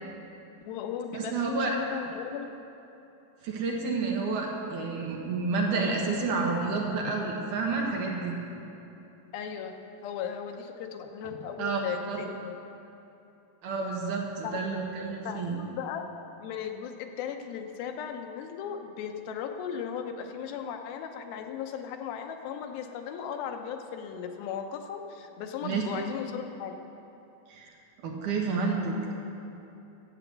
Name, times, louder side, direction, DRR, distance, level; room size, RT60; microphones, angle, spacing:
voice 1, 0.6-2.5 9.3-12.6 14.4-14.6 15.3-16.0 16.4-26.7, left 8 dB, 90° left, 5 dB, 2.6 m, -37 dB
voice 2, 1.1-1.8 3.4-8.4 11.6-11.8 12.1-12.2 13.6-15.6 25.6-25.8 27.5-27.7 28.0-29.1, right 4 dB, 65° right, -1 dB, 2.7 m, -30 dB
12.0 x 8.0 x 8.1 m, 2.9 s
omnidirectional pair, 4.2 m